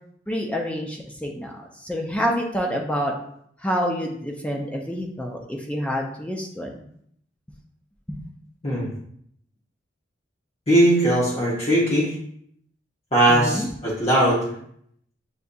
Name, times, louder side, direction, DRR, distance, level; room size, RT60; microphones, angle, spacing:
voice 1, 0.3-1.5 1.8-3.1 3.6-6.8 8.1-8.2 13.3-13.7, equal, 5° left, 1 dB, 0.4 m, -27 dB
voice 2, 10.7-12.1 13.1-14.5, right 1 dB, 35° left, -7 dB, 0.9 m, -19 dB
6.8 x 2.5 x 2.6 m, 0.68 s
head